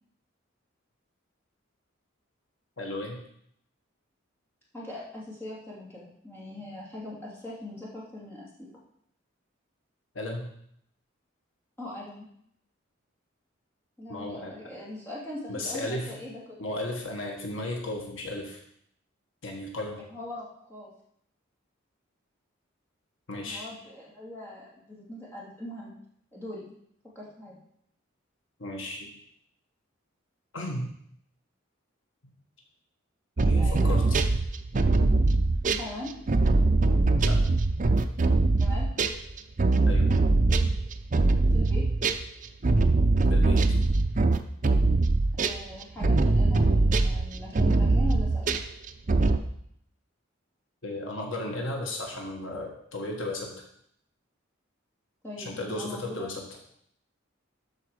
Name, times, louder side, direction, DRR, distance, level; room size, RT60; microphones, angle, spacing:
voice 1, 2.8-3.2 10.1-10.5 14.1-14.6 15.5-16.2 16.6-18.6 19.4-20.0 23.3-23.7 28.6-29.1 30.5-30.9 33.4-34.2 37.2-37.5 39.9-40.2 43.3-43.8 50.8-53.5 55.4-56.4, left 1 dB, 70° left, 0 dB, 1.5 m, -35 dB
voice 2, 4.7-8.8 11.8-12.3 14.0-16.4 20.1-20.9 23.4-25.9 26.3-26.7 27.1-27.6 33.6-34.1 35.6-36.1 38.5-38.9 41.5-41.9 45.4-48.6 55.2-56.3, left 1 dB, 10° left, -6 dB, 2.7 m, -40 dB
sound 1, 33.4-42.2 42.6-49.4, right 3 dB, 40° right, 0.5 m, -22 dB
12.5 x 4.8 x 4.9 m, 0.71 s
head